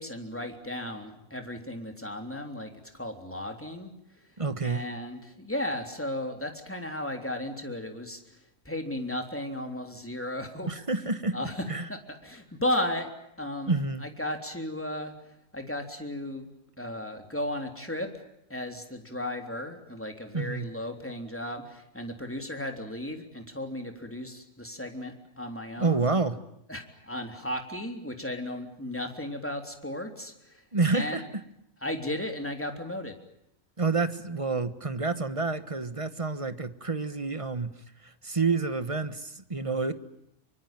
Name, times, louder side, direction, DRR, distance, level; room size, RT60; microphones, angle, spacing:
voice 1, 0.0-4.3 4.6-8.4 8.7-13.1 13.4-15.1 15.5-16.5 16.8-18.1 18.5-26.1 26.7-30.6 30.9-31.3 31.8-33.1, left 1 dB, 10° left, 3.5 m, -35 dB
voice 2, 4.4-4.8 10.7-11.4 11.7-11.9 13.7-14.1 20.3-20.7 25.8-26.4 30.7-31.2 33.8-37.7 38.0-39.9, right 3 dB, 25° right, 1.4 m, -28 dB
25.5 x 24.0 x 9.1 m
omnidirectional pair, 1.4 m